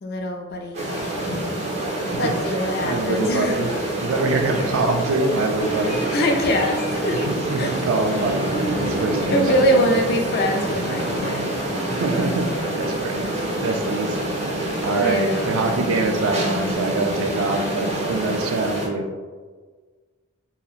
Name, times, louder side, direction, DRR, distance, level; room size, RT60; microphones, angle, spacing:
voice 1, 0.0-0.9 1.2-1.5 1.9-3.7 4.5-4.9 5.9-7.2 7.6-7.7 9.3-11.5 15.0-15.7, equal, 50° left, 3 dB, 0.4 m, -24 dB
sound 1, 0.7-18.9, right 1 dB, 30° right, 0.6 m, -26 dB
voice 2, 2.8-3.7 4.0-6.0 7.3-8.4 8.8-10.0 11.9-12.5 12.7-13.3 13.6-14.2 14.8-19.1, right 3 dB, 80° right, 5 dB, 0.4 m, -24 dB
sound 2, 5.5-10.8, left 2 dB, 85° left, 0.8 m, -44 dB
2.9 x 2.7 x 2.4 m, 1.5 s
head